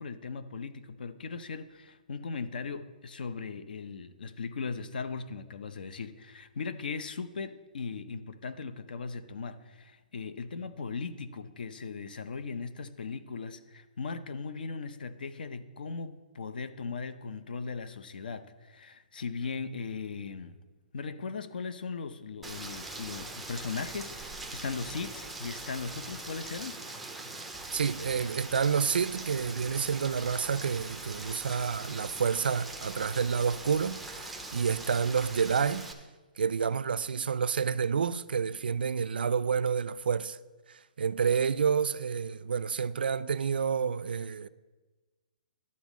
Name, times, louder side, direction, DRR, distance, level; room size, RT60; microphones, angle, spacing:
voice 1, 0.0-20.6 20.9-26.8, left 5 dB, 70° left, 0.7 m, -38 dB
Rain, 22.4-35.9, right 2 dB, ahead, 0.4 m, -42 dB
voice 2, 27.7-35.9 36.4-40.4 40.7-44.5, right 6 dB, 90° right, 0.4 m, -29 dB
11.0 x 4.1 x 7.3 m
hypercardioid pair, 170°, 5 cm